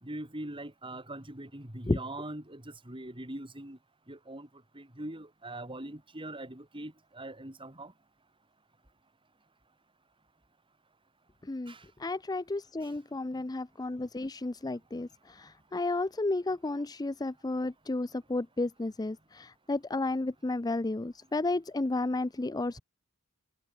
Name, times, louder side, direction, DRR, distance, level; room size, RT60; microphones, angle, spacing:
voice 1, 0.0-3.8 4.1-4.5 4.7-7.9 11.7-11.8, right 1 dB, 25° right, 3.8 m, -42 dB
voice 2, 11.4-11.7 12.0-22.8, left 2 dB, 20° left, 0.5 m, -32 dB
open air
head